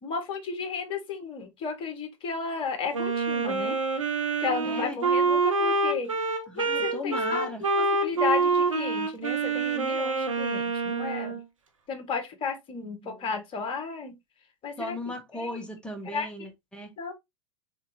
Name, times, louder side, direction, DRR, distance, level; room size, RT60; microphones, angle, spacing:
voice 1, 0.0-3.8 4.4-6.1 6.5-7.5 7.8-11.4 11.9-14.1 14.6-15.0 15.3-15.6 16.0-16.3 17.0-17.1, left 5 dB, 35° left, 1.6 m, -33 dB
Wind instrument woodwind instrument, 2.9-11.4, right 4 dB, 80° right, 1.1 m, -26 dB
voice 2, 4.6-5.0 6.5-7.6 13.0-13.3 14.8-16.9, left 2 dB, 5° left, 1.5 m, -37 dB
4.3 x 3.8 x 2.8 m
figure-of-eight pair, 85°, 17 cm